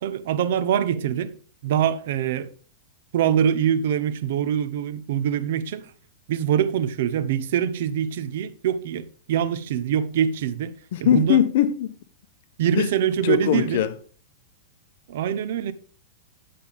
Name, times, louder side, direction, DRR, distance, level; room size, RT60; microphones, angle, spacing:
voice 1, 0.0-1.4 1.6-2.5 3.1-5.8 6.3-10.7 11.0-11.4 12.6-13.8 15.1-15.7, right 9 dB, 65° right, 0.8 m, -24 dB
voice 2, 10.9-11.9 12.7-12.9 13.2-14.0, left 11 dB, 60° left, 0.9 m, -21 dB
10.5 x 6.7 x 3.4 m
supercardioid pair, 155°, 0 cm